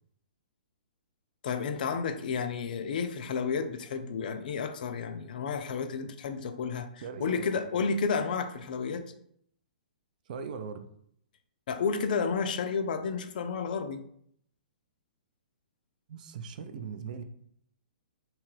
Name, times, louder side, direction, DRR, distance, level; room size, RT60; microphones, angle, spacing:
voice 1, 1.4-9.1 11.7-14.0, left 5 dB, 60° left, 9 dB, 0.3 m, -31 dB
voice 2, 7.0-7.8 10.3-10.9 16.1-17.2, right 6 dB, 55° right, 8 dB, 0.4 m, -39 dB
2.9 x 2.3 x 3.1 m, 0.68 s
hypercardioid pair, 130°, 5 cm